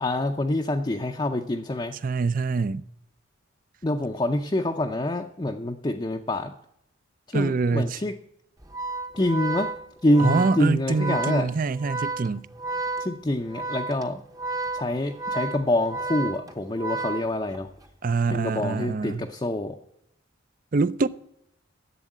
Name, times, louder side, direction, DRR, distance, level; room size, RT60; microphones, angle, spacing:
voice 1, 0.0-2.0 3.8-6.5 7.3-8.1 9.2-9.7 10.0-11.5 13.0-14.2 14.7-17.7 18.3-19.8, left 1 dB, 20° left, 0.5 m, -26 dB
voice 2, 2.0-2.8 7.3-8.0 10.2-12.5 18.0-19.3 20.7-21.1, right 4 dB, 40° right, 0.4 m, -25 dB
Organ, 8.6-17.8, right 3 dB, 15° right, 0.7 m, -32 dB
11.0 x 8.2 x 9.0 m
head